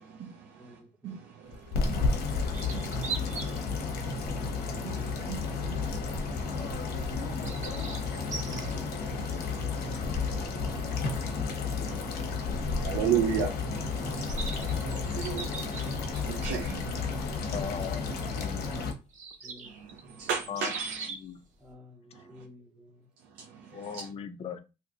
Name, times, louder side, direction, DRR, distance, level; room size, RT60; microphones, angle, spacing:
voice 1, 0.0-2.4 2.7-4.5 4.8-7.5 8.2-11.5 11.8-17.8 18.1-18.4 19.6-21.1 22.1-22.4 23.2-24.1, right 8 dB, 85° right, 0.7 m, -38 dB
voice 2, 0.6-1.1 1.6-1.7 4.3-5.3 7.5-8.7 19.4-19.7 20.0-20.2 21.6-23.0, equal, 5° right, 0.8 m, -54 dB
sound 1, 1.5-18.9, left 4 dB, 65° left, 0.9 m, -32 dB
sound 2, 2.5-3.6 4.1-4.4 5.2-5.3 7.1-8.7 11.2-11.3 11.5-11.6 14.0-16.4 18.2-18.3 19.1-21.3, right 5 dB, 45° right, 0.9 m, -41 dB
voice 3, 17.5-18.7 20.5-20.7 21.2-21.4 23.7-24.6, left 7 dB, 35° left, 0.5 m, -39 dB
2.8 x 2.4 x 3.8 m
cardioid pair, 110°, 17 cm